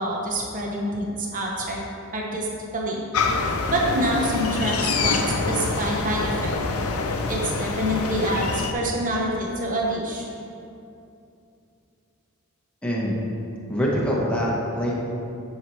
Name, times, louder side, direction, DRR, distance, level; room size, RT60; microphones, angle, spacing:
voice 1, 0.0-1.8 2.1-2.5 2.7-3.0 3.7-6.5 7.3-10.2, right 1 dB, 35° right, -2 dB, 0.9 m, -26 dB
sound 1, 3.1-8.7, left 3 dB, 70° left, 0.6 m, -26 dB
voice 2, 12.8-13.2 13.7-14.9, equal, 5° left, -5 dB, 1.1 m, -24 dB
9.0 x 5.7 x 3.1 m, 2.6 s
head